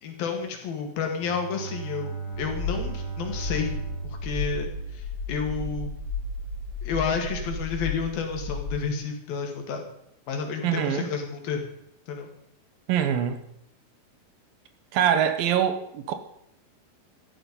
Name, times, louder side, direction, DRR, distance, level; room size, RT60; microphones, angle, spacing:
voice 1, 0.0-6.0 6.8-9.8 10.3-11.6 12.1-12.3, left 6 dB, 80° left, 3 dB, 3.9 m, -31 dB
Bowed string instrument, 1.1-5.6, right 5 dB, 35° right, 7.4 m, -37 dB
sound 1, 2.3-8.7, left 2 dB, 40° left, 3.9 m, -33 dB
voice 2, 10.6-11.1 12.9-13.4 14.9-16.1, right 9 dB, 75° right, 9 dB, 2.8 m, -24 dB
14.0 x 11.5 x 5.5 m, 0.75 s
omnidirectional pair, 4.2 m